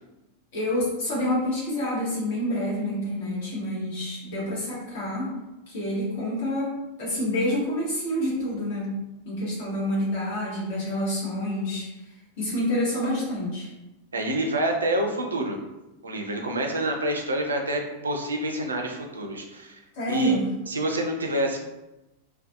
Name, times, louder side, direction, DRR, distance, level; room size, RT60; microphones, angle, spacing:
voice 1, 0.5-5.3 5.7-9.0 9.2-11.9 12.4-13.7 19.9-20.5, left 1 dB, 55° left, -6 dB, 1.1 m, -28 dB
voice 2, 14.1-15.6 16.0-19.8 20.1-20.3 20.7-21.6, right 1 dB, 75° right, 2 dB, 0.4 m, -27 dB
2.4 x 2.4 x 2.3 m, 0.99 s
figure-of-eight pair, 90°, 0 cm